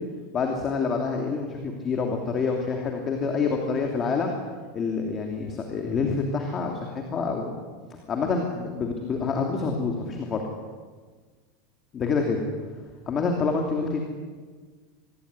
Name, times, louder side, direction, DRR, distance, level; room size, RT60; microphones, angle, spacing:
voice 1, 0.3-4.3 4.7-7.6 8.1-10.4 11.9-12.4 13.1-14.0, left 4 dB, 20° left, 2 dB, 2.9 m, -27 dB
26.0 x 20.5 x 10.0 m, 1.5 s
supercardioid pair, 175°, 0 cm